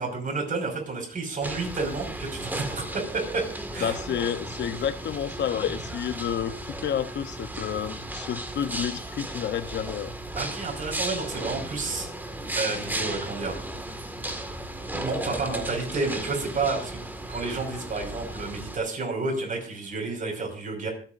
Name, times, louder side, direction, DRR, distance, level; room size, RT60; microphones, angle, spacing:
voice 1, 0.0-2.9 3.1-3.5 3.7-4.0 10.4-12.1 12.6-13.6 14.9-17.0 17.3-20.9, right 3 dB, 40° right, 2 dB, 5.4 m, -30 dB
sound 1, 1.4-18.8, right 1 dB, 10° right, 1.9 m, -35 dB
voice 2, 3.8-6.5 6.8-10.1, left 9 dB, 65° left, 11 dB, 0.9 m, -30 dB
25.5 x 8.8 x 2.6 m, 0.43 s
cardioid pair, 90°, 20 cm